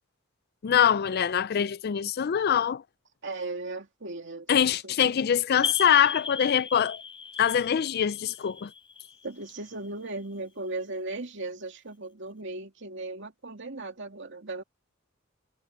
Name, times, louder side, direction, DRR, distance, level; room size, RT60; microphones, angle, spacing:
voice 1, 0.6-2.8 4.5-7.0 7.4-8.7, left 8 dB, 50° left, 0.4 m, -24 dB
voice 2, 3.2-5.3 9.2-14.6, right 2 dB, 60° right, 2.7 m, -37 dB
sound 1, 5.6-10.1, left 6 dB, 25° left, 3.3 m, -36 dB
head